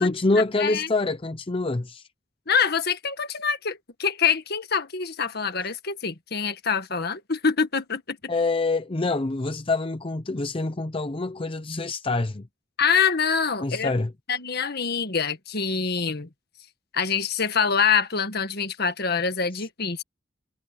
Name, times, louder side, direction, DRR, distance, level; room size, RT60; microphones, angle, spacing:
voice 1, 0.0-2.0 8.3-12.5 13.6-14.1 19.6-19.7, left 2 dB, 30° left, 0.7 m, -26 dB
voice 2, 2.5-8.2 12.8-13.9 14.3-16.3 16.9-20.0, left 6 dB, 60° left, 1.7 m, -25 dB
head